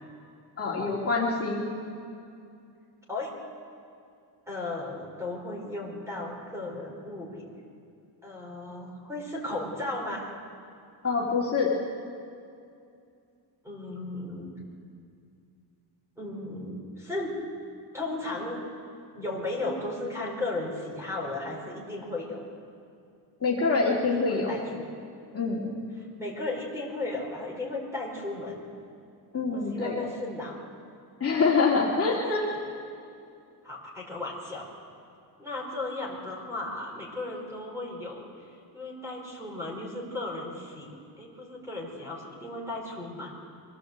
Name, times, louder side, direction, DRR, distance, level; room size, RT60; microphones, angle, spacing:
voice 1, 0.6-1.6 11.0-11.7 23.4-24.6 25.3-25.8 29.3-29.9 31.2-32.5, left 4 dB, 30° left, -5 dB, 2.7 m, -25 dB
voice 2, 4.5-7.5 8.2-10.3 13.6-14.5 16.2-17.4 17.9-18.6 19.1-22.4 24.1-24.9 26.0-28.7 29.5-30.6 32.2-32.4 33.6-34.7 35.4-40.9 41.2-43.4, left 2 dB, 5° right, -1 dB, 4.7 m, -35 dB
24.0 x 17.0 x 8.1 m, 2.4 s
wide cardioid pair, 175°, 43 cm